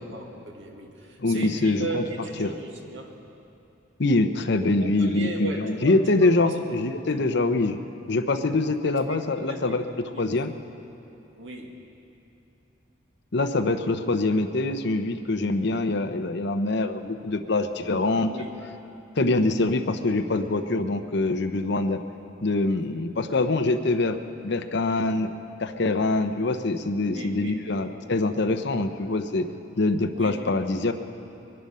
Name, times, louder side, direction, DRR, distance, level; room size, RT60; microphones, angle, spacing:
voice 1, 0.0-3.2 4.8-6.0 6.2-6.6 7.1-7.6 8.8-9.2 9.5-9.8 10.1-10.3 11.4-11.8 18.3-18.7 27.1-27.9 30.1-30.4, right 2 dB, 75° right, 1 dB, 1.9 m, -37 dB
voice 2, 1.2-2.0 2.4-2.5 4.0-7.8 8.1-10.5 13.3-18.3 19.2-22.0 22.4-24.2 24.4-25.3 25.6-29.5 29.8-30.9, left 2 dB, 60° left, 8 dB, 0.8 m, -24 dB
23.0 x 11.0 x 5.5 m, 2.8 s
head